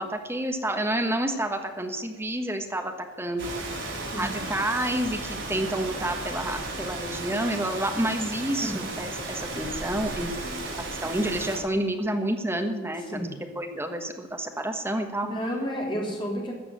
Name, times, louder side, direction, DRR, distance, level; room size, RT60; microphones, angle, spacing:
voice 1, 0.0-2.9 3.2-3.6 4.2-10.7 11.0-13.2 13.6-15.3, right 1 dB, 10° right, 5 dB, 1.3 m, -29 dB
Rain, 3.4-11.6, right 2 dB, 65° right, 4.9 m, -34 dB
voice 2, 15.2-16.5, equal, 25° left, -1 dB, 3.3 m, -31 dB
13.5 x 7.4 x 9.1 m, 1.5 s
head